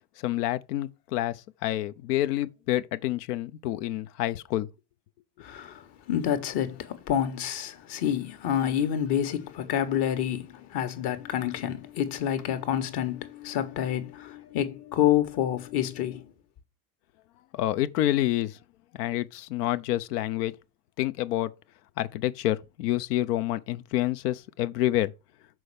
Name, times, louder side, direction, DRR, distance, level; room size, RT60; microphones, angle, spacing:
voice 1, 0.2-1.4 1.6-4.7 17.5-18.5 19.0-20.5 21.0-21.5 22.0-25.1, left 14 dB, 80° left, 0.8 m, -28 dB
voice 2, 5.4-16.3, left 10 dB, 60° left, 1.6 m, -28 dB
6.3 x 4.4 x 4.9 m
hypercardioid pair, 80°, 46 cm